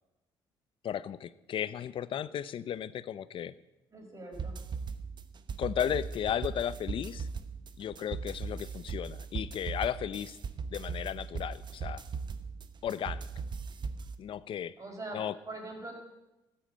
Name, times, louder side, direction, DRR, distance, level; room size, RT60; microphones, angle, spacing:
voice 1, 0.8-3.5 5.6-7.3 7.8-10.4 10.7-12.0 12.8-13.3 14.2-14.8 15.1-15.3, left 9 dB, 55° left, 17 dB, 0.7 m, -35 dB
voice 2, 3.9-4.6 14.8-15.2 15.5-15.9, right 2 dB, 30° right, 1 dB, 5.3 m, -42 dB
sound 1, 4.3-14.1, right 5 dB, 45° right, 1.0 m, -39 dB
13.5 x 8.7 x 8.7 m, 1.0 s
supercardioid pair, 70°, 10 cm